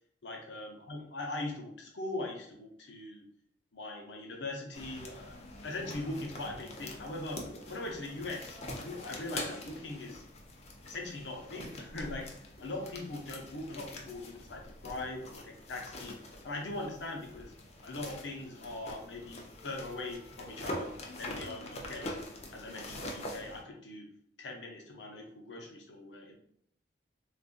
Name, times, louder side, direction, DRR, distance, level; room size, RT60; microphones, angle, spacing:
voice 1, 0.2-3.3 3.7-5.4 5.6-7.4 7.7-10.2 10.8-12.2 12.6-16.2 16.4-17.5 17.8-22.1 22.5-24.1 24.4-26.3, left 2 dB, 85° left, 0 dB, 0.7 m, -41 dB
sound 1, 4.7-23.6, left 1 dB, 40° left, 0.5 m, -44 dB
3.7 x 2.4 x 2.5 m, 0.67 s
head